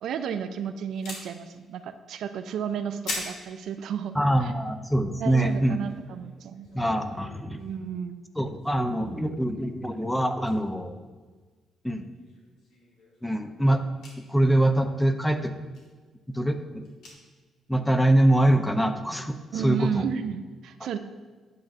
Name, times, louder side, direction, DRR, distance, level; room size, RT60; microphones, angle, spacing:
voice 1, 0.0-4.2 4.4-4.5 5.2-6.7 7.5-8.2 19.5-21.0, right 8 dB, 75° right, 9 dB, 0.5 m, -32 dB
sound 1, 0.9-8.1 8.4-9.3 9.6-9.9 10.1-10.6 10.9-11.0 11.5-11.6 12.0-17.6 18.0-18.1 18.5-18.6 18.9-19.7, left 2 dB, 90° left, 2.5 m, -43 dB
voice 2, 4.1-5.8 6.7-7.6 8.4-11.0 11.8-12.1 13.2-13.8 14.3-15.5 16.3-16.8 17.7-20.1, right 1 dB, 5° left, 7 dB, 0.6 m, -24 dB
9.5 x 7.4 x 2.6 m, 1.4 s
cardioid pair, 90°, 0 cm